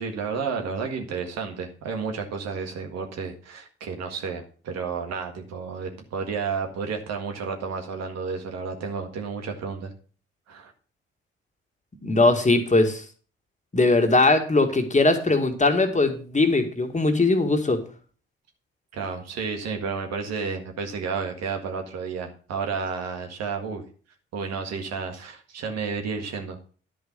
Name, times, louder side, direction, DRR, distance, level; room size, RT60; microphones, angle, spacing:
voice 1, 0.0-9.9 10.5-10.7 18.9-23.9 24.3-26.6, right 5 dB, 60° right, 4 dB, 1.7 m, -31 dB
voice 2, 12.0-13.0 13.7-17.8, left 2 dB, 25° left, 5 dB, 2.1 m, -20 dB
10.5 x 5.0 x 6.8 m, 0.40 s
hypercardioid pair, 40°, 29 cm